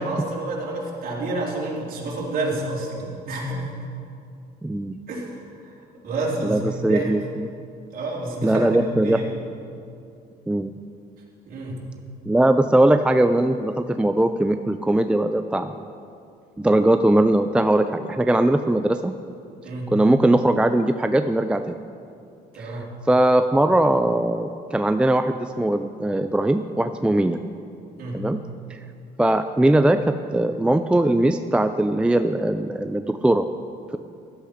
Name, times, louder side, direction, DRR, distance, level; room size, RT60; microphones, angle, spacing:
voice 1, 0.0-3.8 5.1-7.1 7.9-9.3 11.5-11.8 19.6-19.9 22.5-22.9 28.0-28.2, right 2 dB, 60° right, -5 dB, 3.4 m, -29 dB
voice 2, 4.6-5.0 6.4-7.2 8.4-9.2 10.5-10.8 12.3-15.7 16.6-19.1 19.9-21.8 22.5-22.7 23.1-27.4 28.1-28.4 28.7-28.8 29.2-33.5, right 1 dB, 5° right, 8 dB, 0.4 m, -20 dB
14.0 x 11.5 x 5.0 m, 2.5 s
cardioid pair, 110°, 17 cm